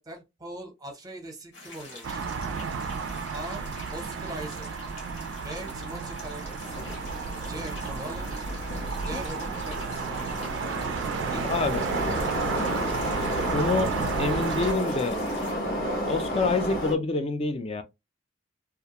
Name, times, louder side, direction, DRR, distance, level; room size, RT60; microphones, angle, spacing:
voice 1, 0.0-2.4 3.3-3.6 3.9-4.7 5.4-6.8 7.5-8.5 9.0-10.1 11.2-12.9, right 1 dB, 20° right, 0.7 m, -41 dB
sound 1, 1.5-15.5, left 3 dB, 65° left, 0.8 m, -46 dB
sound 2, 2.0-14.7, right 5 dB, 70° right, 0.3 m, -32 dB
Subway metro underground, 6.6-16.9, equal, 80° left, 1.1 m, -32 dB
voice 2, 11.5-11.8 13.5-15.2 16.1-17.8, left 3 dB, 30° left, 0.3 m, -27 dB
2.4 x 2.1 x 2.8 m
head